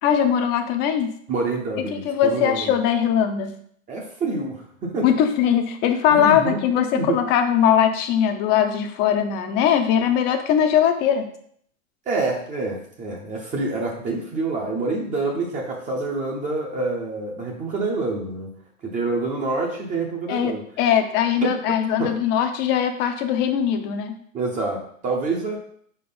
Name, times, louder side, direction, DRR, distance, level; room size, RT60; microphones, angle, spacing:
voice 1, 0.0-1.1 1.9-3.5 5.0-11.3 20.3-24.2, left 9 dB, 25° left, 7 dB, 0.6 m, -20 dB
voice 2, 1.3-2.7 3.9-5.1 6.1-6.6 6.9-7.2 12.1-18.5 18.8-20.6 21.4-21.5 22.0-22.1 24.3-25.6, right 3 dB, 20° right, 0 dB, 0.8 m, -27 dB
4.5 x 4.4 x 5.5 m, 0.63 s
hypercardioid pair, 140°, 41 cm